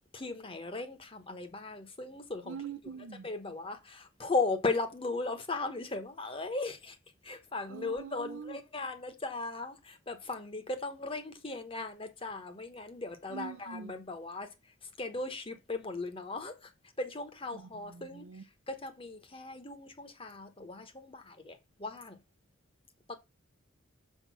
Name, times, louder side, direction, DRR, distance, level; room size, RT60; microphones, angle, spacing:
voice 1, 0.1-2.6 3.2-7.0 7.2-16.7 17.0-18.3 18.7-22.2 23.1-23.2, left 3 dB, 25° left, 1.0 m, -37 dB
voice 2, 2.4-3.3 7.7-8.6 13.3-14.0 17.5-18.4, right 6 dB, 75° right, 0.5 m, -44 dB
6.7 x 3.7 x 6.1 m
head